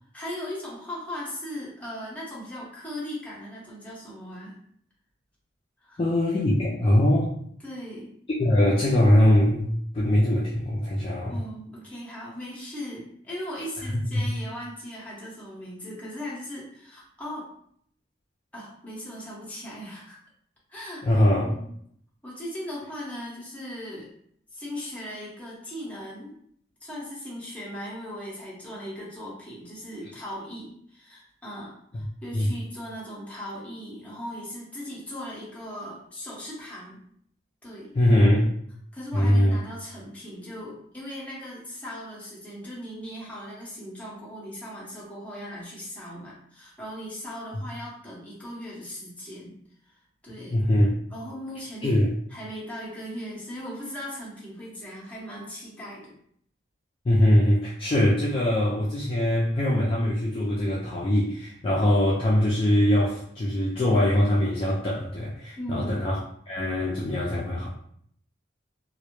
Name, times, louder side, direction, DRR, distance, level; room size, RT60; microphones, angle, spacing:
voice 1, 0.1-4.6 5.8-6.0 7.6-8.1 11.3-17.5 18.5-20.2 20.7-21.7 22.2-24.1 24.5-26.3 26.8-37.0 37.6-37.9 38.9-49.6 49.8-50.7 51.1-52.0 52.3-56.1 65.6-66.0, equal, 10° left, -6 dB, 0.7 m, -38 dB
voice 2, 6.0-7.3 8.4-11.4 14.1-14.3 21.0-21.6 31.9-32.0 32.3-32.5 37.9-38.5 39.1-39.6 50.5-50.9 51.8-52.1 57.1-66.2 66.5-67.7, left 1 dB, 30° left, -5 dB, 0.3 m, -22 dB
2.1 x 2.0 x 2.9 m, 0.66 s
head